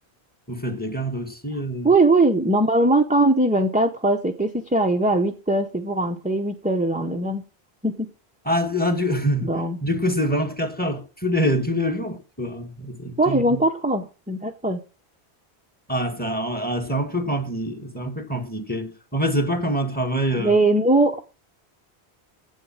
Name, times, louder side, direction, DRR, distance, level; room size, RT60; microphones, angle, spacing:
voice 1, 0.5-1.9 8.4-13.6 15.9-20.6, equal, 10° left, 1.6 m, -25 dB
voice 2, 1.8-7.4 7.8-8.1 9.4-9.8 13.2-14.8 20.4-21.2, right 2 dB, 10° right, 0.7 m, -20 dB
10.0 x 8.1 x 7.2 m
omnidirectional pair, 1.1 m